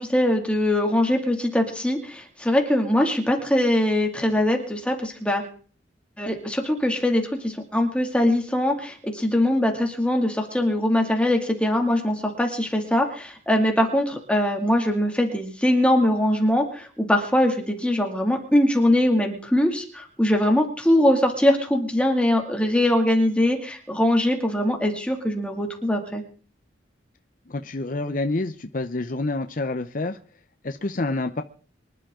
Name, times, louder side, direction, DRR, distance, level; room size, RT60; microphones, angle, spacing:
voice 1, 0.0-5.4 6.2-26.2, left 1 dB, 5° left, 2 dB, 2.3 m, -22 dB
voice 2, 27.5-30.2 30.6-31.4, left 2 dB, 45° left, 7 dB, 0.7 m, -28 dB
24.5 x 11.5 x 3.8 m, 0.43 s
head